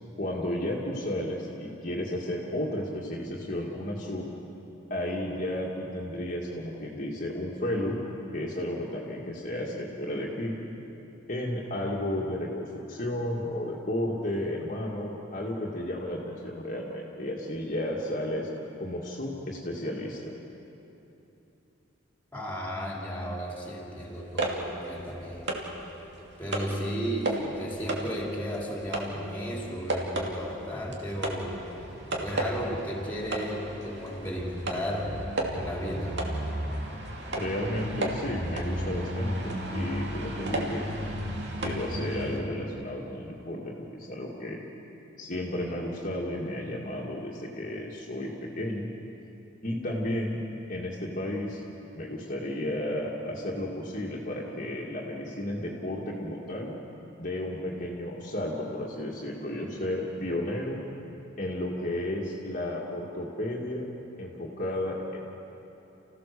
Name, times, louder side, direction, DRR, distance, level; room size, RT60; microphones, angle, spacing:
voice 1, 0.2-4.2 4.9-8.0 8.3-10.6 11.3-18.5 18.8-20.3 37.3-40.9 41.6-44.6 45.2-48.9 49.6-50.4 50.7-51.6 52.0-56.7 57.2-60.8 61.4-63.9 64.2-65.2, left 1 dB, 40° left, -3 dB, 2.1 m, -33 dB
voice 2, 22.3-25.7 26.4-31.6 32.2-35.2 35.5-36.4, equal, 10° left, -2 dB, 3.6 m, -34 dB
sound 1, 24.1-25.8 26.2-26.8 27.2-27.5 27.9-42.4, right 1 dB, 60° right, 2.7 m, -33 dB
30.0 x 16.0 x 6.9 m, 3.0 s
head